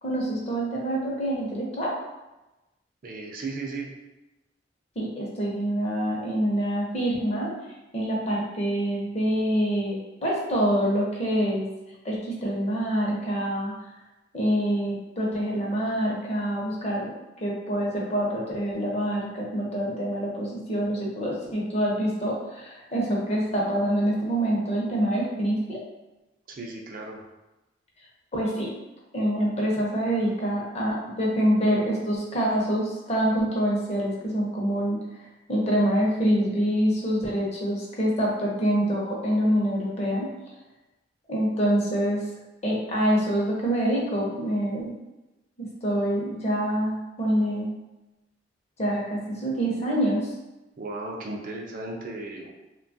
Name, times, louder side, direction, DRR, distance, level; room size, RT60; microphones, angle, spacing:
voice 1, 0.0-1.9 5.0-7.5 7.9-11.7 12.0-13.7 14.3-17.1 17.4-25.8 28.3-28.7 29.1-35.0 35.5-40.3 41.3-42.2 42.6-44.9 45.6-47.7 48.8-50.3, equal, 35° left, -3 dB, 0.7 m, -26 dB
voice 2, 3.0-3.9 26.5-27.2 50.8-52.5, right 2 dB, 50° right, 1 dB, 0.4 m, -35 dB
2.9 x 2.2 x 2.6 m, 1.0 s
head